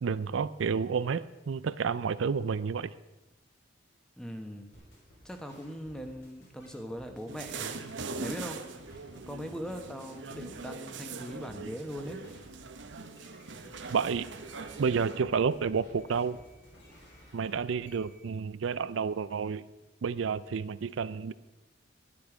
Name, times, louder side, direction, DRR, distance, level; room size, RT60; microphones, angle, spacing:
voice 1, 0.0-2.9 13.9-14.3 14.8-16.4 17.3-19.6 20.0-21.3, right 6 dB, 90° right, 16 dB, 0.4 m, -30 dB
voice 2, 4.2-4.7 5.2-7.9 8.2-8.6 9.3-12.2, equal, 5° left, 5 dB, 1.1 m, -40 dB
sound 1, 4.7-18.2, left 1 dB, 65° left, 4.2 m, -56 dB
sound 2, 7.3-15.2, right 4 dB, 75° right, 0.9 m, -42 dB
12.5 x 10.5 x 5.0 m, 1.1 s
head